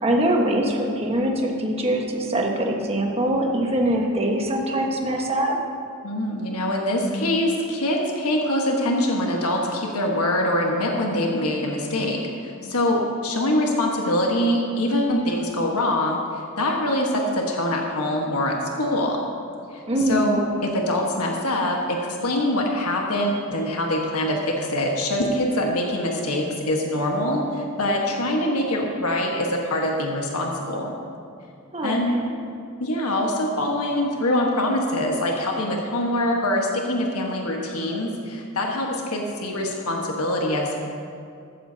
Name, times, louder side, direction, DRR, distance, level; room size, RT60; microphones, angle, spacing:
voice 1, 0.0-5.6 19.9-20.3 31.7-32.3, right 1 dB, 30° right, 0 dB, 1.3 m, -23 dB
voice 2, 6.0-19.2 19.7-30.9 31.8-32.1 32.8-40.8, left 1 dB, 85° left, 0 dB, 1.4 m, -24 dB
14.5 x 13.5 x 2.8 m, 2.4 s
head